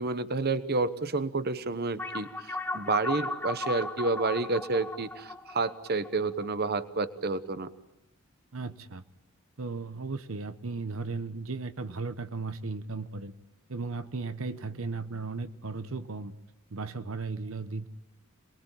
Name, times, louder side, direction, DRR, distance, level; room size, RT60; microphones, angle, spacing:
voice 1, 0.0-7.7, right 3 dB, 45° right, 12 dB, 1.0 m, -30 dB
sound 1, 2.0-6.8, left 2 dB, 10° left, 1.2 m, -36 dB
voice 2, 8.5-9.0 9.6-13.3 13.7-16.3 16.7-17.9, right 3 dB, 70° right, 11 dB, 1.0 m, -36 dB
27.0 x 20.5 x 9.0 m, 0.92 s
head